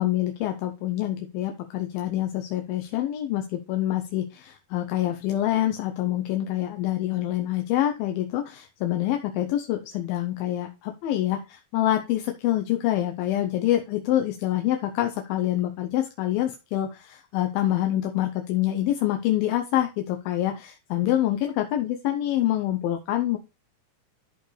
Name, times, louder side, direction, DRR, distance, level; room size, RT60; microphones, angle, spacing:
voice 1, 0.0-23.4, left 13 dB, 80° left, 4 dB, 2.5 m, -26 dB
13.0 x 4.5 x 3.3 m, 0.28 s
omnidirectional pair, 4.3 m